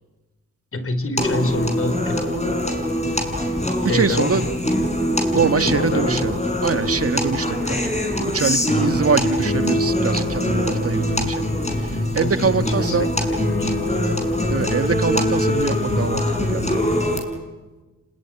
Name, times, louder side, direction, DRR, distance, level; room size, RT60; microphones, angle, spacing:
voice 1, 0.7-2.6 3.9-4.6 5.3-6.4 12.2-14.2, left 2 dB, 40° left, 12 dB, 3.7 m, -27 dB
sound 1, 1.2-17.2, left 1 dB, 20° left, 6.9 m, -23 dB
voice 2, 3.8-4.4 5.3-6.3 6.6-7.9 8.2-11.5 11.7-13.1 14.5-16.8, right 5 dB, 45° right, 10 dB, 1.7 m, -23 dB
27.0 x 19.5 x 9.9 m, 1.2 s
cardioid pair, 60°, 33 cm